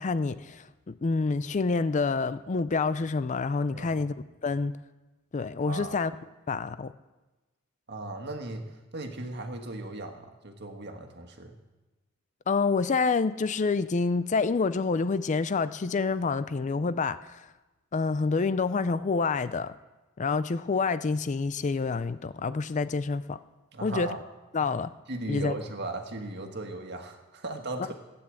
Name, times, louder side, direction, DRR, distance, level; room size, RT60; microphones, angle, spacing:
voice 1, 0.0-4.1 4.4-4.7 5.3-6.1 6.5-6.9 12.5-17.4 17.9-19.7 20.2-23.4 23.8-24.1 24.5-24.9 25.3-25.5, left 4 dB, 35° left, 14 dB, 0.4 m, -27 dB
voice 2, 3.7-4.0 5.7-6.0 7.9-11.6 23.7-24.2 24.6-24.7 25.1-27.9, right 2 dB, 50° right, 5 dB, 1.7 m, -37 dB
15.0 x 9.6 x 7.7 m, 1.1 s
head